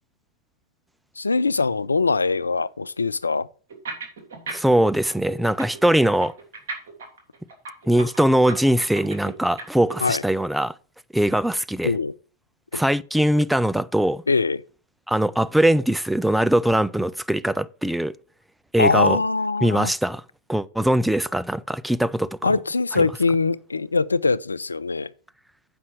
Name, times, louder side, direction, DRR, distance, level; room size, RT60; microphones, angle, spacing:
voice 1, 1.2-3.5 10.0-10.2 11.8-12.1 12.7-12.8 14.3-14.6 18.8-19.9 22.4-25.1, left 4 dB, 90° left, 0.3 m, -22 dB
sound 1, 3.7-4.8 5.1-10.0, right 3 dB, 65° right, 3.1 m, -35 dB
voice 2, 4.5-6.3 7.9-10.7 11.1-11.9 12.7-14.2 15.1-18.1 18.7-19.2 19.6-20.2 20.5-22.4 23.0-23.1, right 1 dB, 5° right, 0.4 m, -21 dB
7.7 x 5.5 x 6.2 m
figure-of-eight pair, 95°, 0 cm